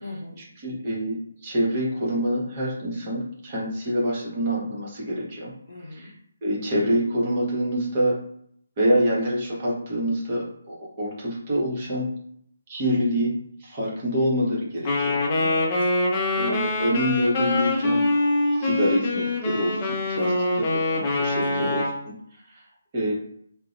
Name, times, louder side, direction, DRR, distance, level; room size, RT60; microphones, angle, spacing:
voice 1, 0.0-0.4 5.7-6.1 15.4-15.9 20.2-20.8 21.4-21.8, left 2 dB, 70° left, 0 dB, 0.7 m, -39 dB
voice 2, 0.6-1.2 1.4-5.5 5.9-6.1 6.4-8.2 8.8-12.1 12.7-13.3 13.6-15.2 16.3-18.0 18.6-20.3 20.9-21.8 22.9-23.1, equal, 35° right, -5 dB, 1.0 m, -26 dB
Wind instrument woodwind instrument, 14.8-22.0, left 2 dB, 25° left, 0.6 m, -24 dB
2.5 x 2.1 x 2.6 m, 0.67 s
figure-of-eight pair, 150°, 0 cm